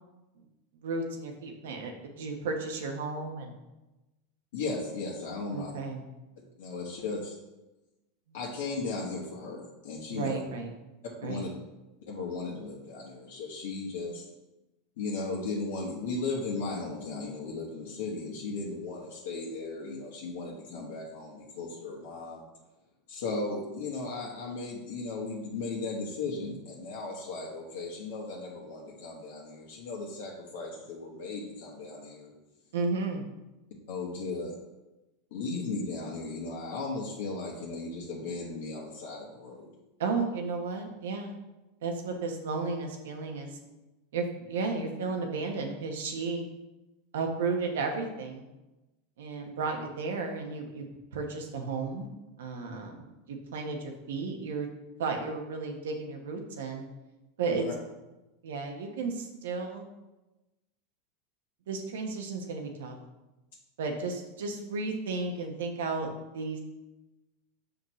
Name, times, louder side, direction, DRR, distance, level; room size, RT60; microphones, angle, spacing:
voice 1, 0.8-3.6 5.5-6.0 10.1-10.7 11.2-11.4 32.7-33.3 40.0-41.3 41.8-43.5 44.1-46.5 47.1-48.5 49.2-52.1 52.4-54.7 55.0-56.9 57.4-57.6 58.4-59.9 61.7-63.0 63.8-66.6, right 4 dB, 90° right, 3 dB, 1.0 m, -33 dB
voice 2, 4.5-5.7 6.6-7.3 8.3-10.4 11.2-11.5 12.1-14.2 15.0-22.4 23.1-32.3 33.9-34.5 35.3-39.7 57.5-57.7, left 3 dB, 80° left, -3 dB, 1.3 m, -36 dB
6.2 x 5.0 x 3.1 m, 1.0 s
supercardioid pair, 140°, 0 cm